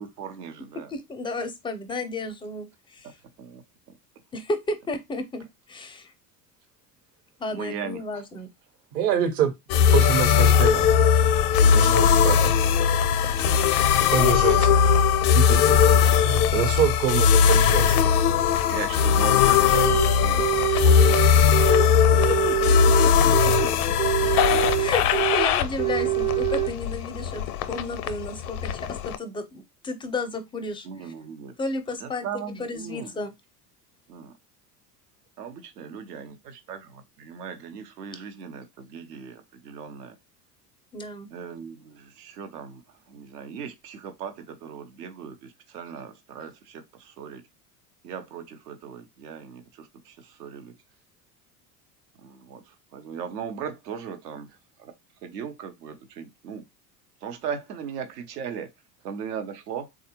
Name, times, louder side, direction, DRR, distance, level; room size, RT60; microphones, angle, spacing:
voice 1, 0.0-0.9 3.4-3.6 7.5-8.0 11.6-12.0 13.7-14.0 18.7-21.4 21.8-22.7 24.2-24.7 30.8-31.5 32.0-33.1 34.1-34.3 35.4-40.1 41.3-42.8 43.1-47.4 48.0-50.7 52.2-54.5 54.8-54.9 55.2-56.6 57.2-58.7 59.0-59.9, right 7 dB, 75° right, 0.8 m, -38 dB
voice 2, 0.7-3.1 4.3-6.1 7.4-8.5 22.1-23.7 24.8-31.1 31.6-32.3 32.6-33.3 40.9-41.3, left 2 dB, 10° left, 0.4 m, -33 dB
voice 3, 8.9-9.5 9.9-10.9 11.6-12.5 14.1-14.7 15.3-15.8 16.2-18.0, right 9 dB, 55° right, 1.0 m, -25 dB
sound 1, 9.7-29.2, left 7 dB, 65° left, 0.6 m, -20 dB
sound 2, 19.7-20.1 20.4-21.9 22.2-23.7 24.0-25.5 25.8-26.7, right 26 dB, 35° right, 0.6 m, -25 dB
3.5 x 2.4 x 2.8 m
hypercardioid pair, 75°, 48 cm